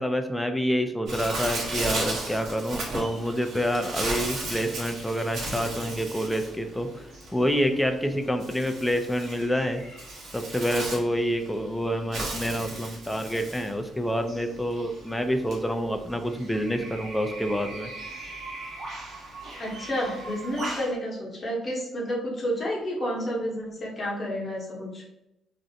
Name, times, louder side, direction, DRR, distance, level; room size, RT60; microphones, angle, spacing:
voice 1, 0.0-6.9 7.3-9.8 10.3-17.9, equal, 5° left, 7 dB, 0.3 m, -27 dB
Bird, 1.1-20.9, right 2 dB, 70° right, 0.8 m, -36 dB
voice 2, 19.6-25.0, equal, 35° left, -2 dB, 0.8 m, -30 dB
2.5 x 2.1 x 2.7 m, 0.87 s
cardioid pair, 90°, 0 cm